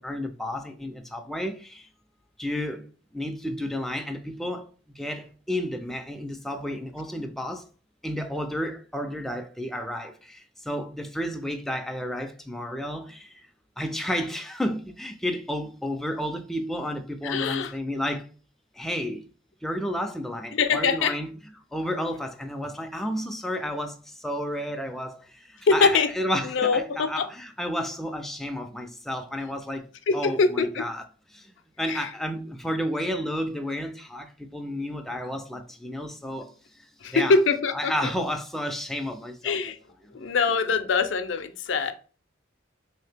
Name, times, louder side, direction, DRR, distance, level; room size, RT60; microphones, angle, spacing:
voice 1, 0.0-1.9 2.4-2.9 3.1-7.7 8.0-13.5 13.8-18.3 18.8-19.2 19.6-21.3 21.7-31.0 31.3-31.5 31.8-36.5 37.1-37.3 37.7-39.6, equal, ahead, 0.3 m, -31 dB
voice 2, 17.2-17.8 20.5-21.2 25.7-26.1 26.4-27.3 30.1-30.8 31.9-32.1 37.0-38.1 39.4-39.8 40.1-41.9, left 4 dB, 85° left, 0.5 m, -23 dB
3.5 x 2.8 x 3.3 m
head